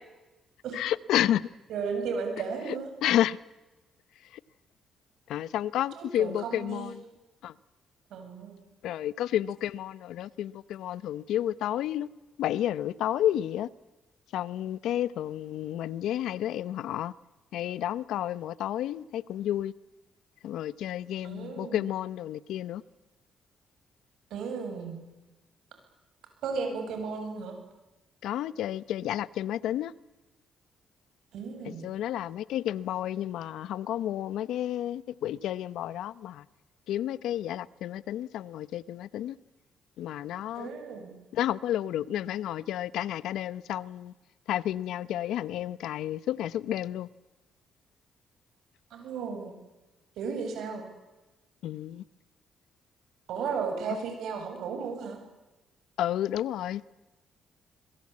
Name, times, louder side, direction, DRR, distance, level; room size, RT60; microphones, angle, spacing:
voice 1, 0.7-1.4 3.0-3.4 5.3-6.9 7.4-7.5 8.8-12.1 12.4-13.7 14.3-17.1 17.5-19.7 20.4-22.8 28.2-29.9 31.8-36.4 36.9-39.4 40.0-40.7 41.3-44.1 44.5-47.1 51.6-52.0 56.0-56.8, left 12 dB, 85° left, 0.8 m, -31 dB
voice 2, 1.7-2.9 6.0-7.0 8.1-8.6 21.2-21.9 24.3-25.0 26.4-27.6 31.3-31.9 40.5-41.1 48.9-49.5 50.2-50.9 53.3-55.2, right 5 dB, 80° right, 7.8 m, -34 dB
26.5 x 23.0 x 8.6 m
cardioid pair, 90°, 0 cm